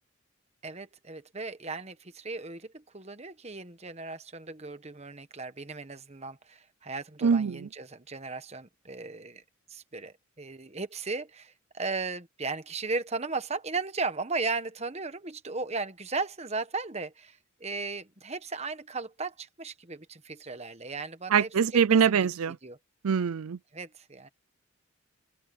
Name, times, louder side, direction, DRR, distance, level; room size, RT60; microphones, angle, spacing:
voice 1, 0.6-9.4 9.7-21.5 21.9-22.2 22.6-22.8 23.7-24.3, right 3 dB, 30° right, 1.2 m, -36 dB
voice 2, 7.2-7.7 21.3-22.6 23.0-23.6, right 7 dB, 85° right, 0.5 m, -23 dB
open air
head